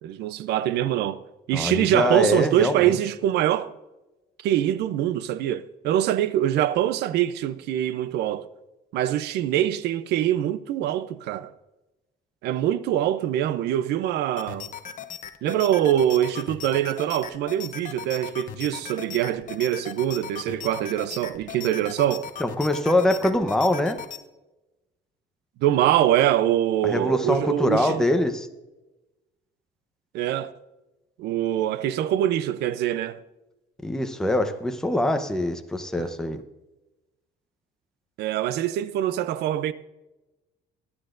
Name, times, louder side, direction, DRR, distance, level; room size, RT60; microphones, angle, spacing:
voice 1, 0.0-3.7 4.4-8.5 8.9-11.5 12.4-14.7 15.4-22.3 25.6-28.1 30.1-30.5 31.2-33.2 36.0-36.1 38.2-39.7, right 12 dB, 80° right, 0.6 m, -24 dB
voice 2, 1.5-3.0 22.4-24.0 26.8-28.5 33.8-36.4, left 1 dB, 5° left, 0.9 m, -23 dB
sound 1, 14.4-24.2, left 8 dB, 50° left, 0.8 m, -38 dB
22.0 x 9.9 x 2.6 m
cardioid pair, 110°, 17 cm